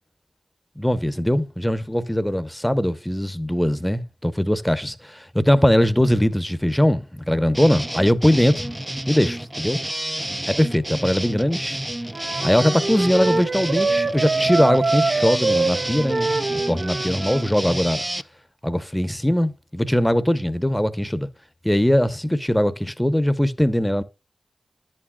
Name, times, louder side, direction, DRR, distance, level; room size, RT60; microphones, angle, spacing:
voice 1, 0.8-8.7 9.1-9.8 10.5-11.8 12.4-18.0 18.6-21.3 21.6-24.0, equal, 5° left, 0.9 m, -21 dB
sound 1, 7.5-18.2, right 1 dB, 10° right, 0.5 m, -30 dB
Wind instrument woodwind instrument, 12.1-17.5, right 3 dB, 75° right, 2.0 m, -24 dB
10.5 x 8.8 x 2.3 m
cardioid pair, 60°, 0 cm